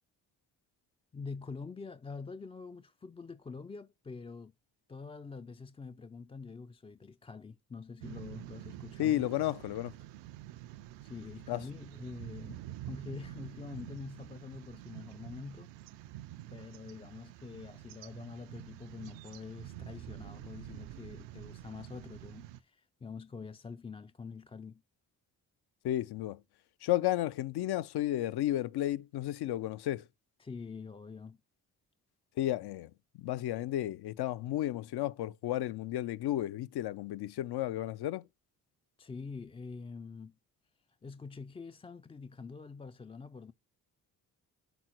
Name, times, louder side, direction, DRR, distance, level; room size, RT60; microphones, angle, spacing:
voice 1, 1.1-4.5 4.9-9.3 10.7-16.1 16.5-24.8 30.4-31.4 39.0-40.4 41.0-43.5, left 4 dB, 15° left, 0.3 m, -46 dB
sound 1, 8.0-22.6, right 13 dB, 80° right, 0.6 m, -48 dB
voice 2, 9.0-9.9 11.5-11.6 25.8-26.4 26.8-30.1 32.4-32.9 33.2-38.2, left 14 dB, 65° left, 0.6 m, -33 dB
6.1 x 3.9 x 4.4 m
hypercardioid pair, 40°, 43 cm